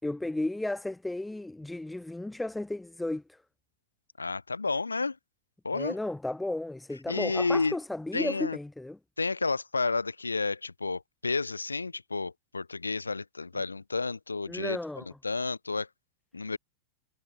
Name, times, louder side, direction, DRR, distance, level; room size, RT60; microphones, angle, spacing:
voice 1, 0.0-3.4 5.7-9.0 14.5-15.1, left 2 dB, 5° left, 3.1 m, -34 dB
voice 2, 4.2-5.2 5.6-5.9 7.1-7.8 8.1-8.6 9.2-15.9 16.3-16.6, left 3 dB, 80° left, 2.6 m, -31 dB
figure-of-eight pair, 90°, 0 cm